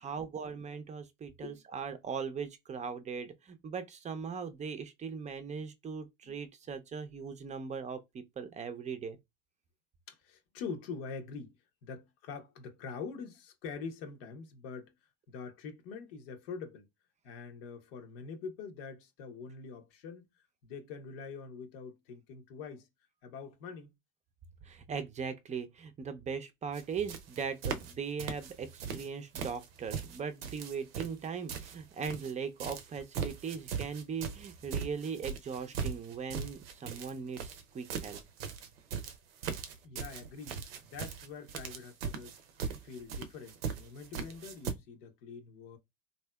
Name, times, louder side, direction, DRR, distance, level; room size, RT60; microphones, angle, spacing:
voice 1, 0.0-9.2 24.6-38.2, right 6 dB, 25° right, 0.6 m, -39 dB
voice 2, 10.1-11.6 11.8-14.9 15.3-16.9 17.2-20.3 20.6-22.9 23.2-23.9 39.8-42.3 42.8-45.8, left 5 dB, 75° left, 1.0 m, -44 dB
sound 1, 26.7-26.8 27.1-27.9 28.2-29.1 29.3-32.3 32.6-44.7, right 6 dB, 85° right, 0.6 m, -39 dB
3.4 x 2.7 x 2.2 m
hypercardioid pair, 90°, 29 cm